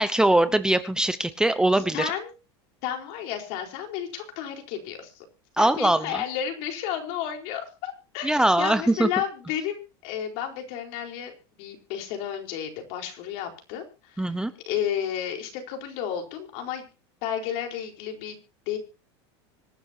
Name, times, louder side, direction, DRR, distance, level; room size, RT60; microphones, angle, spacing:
voice 1, 0.0-2.1 5.6-6.2 8.2-9.1 14.2-14.5, right 1 dB, 5° right, 11 dB, 0.9 m, -22 dB
voice 2, 1.7-2.3 2.8-5.2 5.6-11.3 11.6-14.3 14.7-16.9 17.2-18.4 18.7-18.8, left 9 dB, 60° left, 3 dB, 4.4 m, -32 dB
25.5 x 10.5 x 2.9 m, 0.32 s
supercardioid pair, 130°, 14 cm